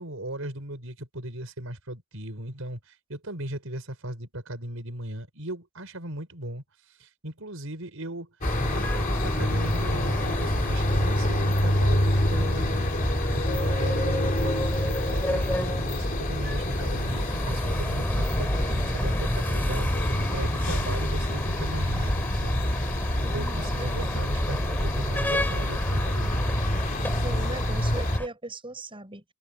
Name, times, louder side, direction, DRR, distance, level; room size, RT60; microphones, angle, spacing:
voice 1, 0.0-6.6 7.0-8.3 8.6-12.9 13.3-22.9 23.2-26.5, right 1 dB, 75° right, 5.4 m, -37 dB
sound 1, 8.4-28.2, left 1 dB, 40° left, 3.3 m, -27 dB
sound 2, 8.4-28.3, equal, 10° left, 7.7 m, -31 dB
voice 2, 23.2-24.2 27.2-29.2, right 2 dB, 25° right, 6.1 m, -38 dB
head